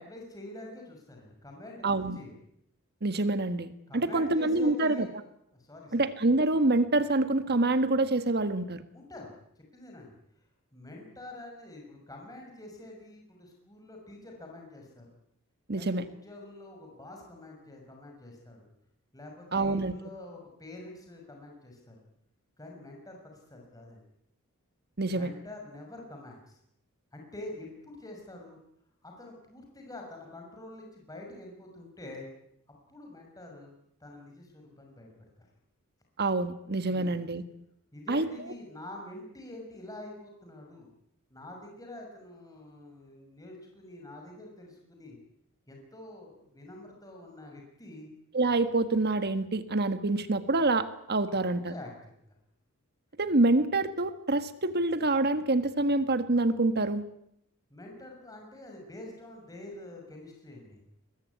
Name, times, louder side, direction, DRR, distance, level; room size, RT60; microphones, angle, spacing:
voice 1, 0.0-2.3 3.9-5.1 5.5-5.9 8.9-10.1 10.7-15.1 15.8-18.7 19.1-22.0 22.6-24.0 25.1-26.6 27.1-28.6 29.0-32.3 32.9-33.7 34.0-35.1 35.4-35.5 36.9-37.2 37.9-40.9 41.3-45.2 45.7-48.1 51.3-51.4 51.6-52.1 57.7-60.8, left 2 dB, 15° left, 1 dB, 6.2 m, -46 dB
voice 2, 1.8-2.2 3.0-5.1 5.9-8.8 15.7-16.0 19.5-19.9 25.0-25.3 36.2-37.4 38.1-38.3 48.3-51.7 53.2-57.0, right 2 dB, 50° right, 11 dB, 1.5 m, -26 dB
22.0 x 21.5 x 9.7 m, 0.74 s
head